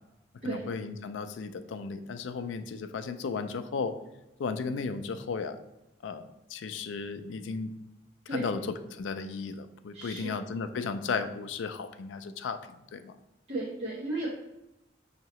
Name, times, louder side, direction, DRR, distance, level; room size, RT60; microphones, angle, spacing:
voice 1, 0.4-3.9 4.4-5.6 6.0-7.7 8.3-8.6 8.9-12.6 12.9-13.1, left 5 dB, 80° left, 9 dB, 0.4 m, -35 dB
voice 2, 9.9-10.4 13.5-14.3, right 2 dB, 35° right, -8 dB, 0.8 m, -34 dB
5.4 x 2.9 x 3.0 m, 0.93 s
head